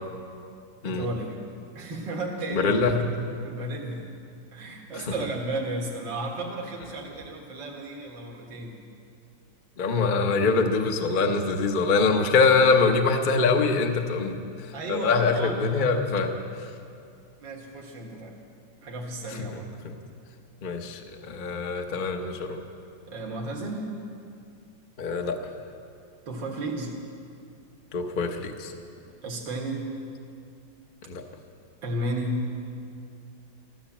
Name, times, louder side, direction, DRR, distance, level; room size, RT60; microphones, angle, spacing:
voice 1, 0.8-1.4 1.8-3.1 3.4-4.0 4.5-8.8 14.7-15.5 17.4-18.4 18.8-19.7 23.1-23.9 26.3-26.9 29.2-29.9 31.8-32.4, right 1 dB, 80° right, -1 dB, 2.4 m, -33 dB
voice 2, 2.5-3.1 9.8-16.3 19.3-19.6 19.8-19.9 20.6-22.6 25.0-25.4 27.9-28.7 31.0-31.2, left 4 dB, 35° left, 5 dB, 0.8 m, -24 dB
14.5 x 13.0 x 7.3 m, 2.5 s
omnidirectional pair, 2.0 m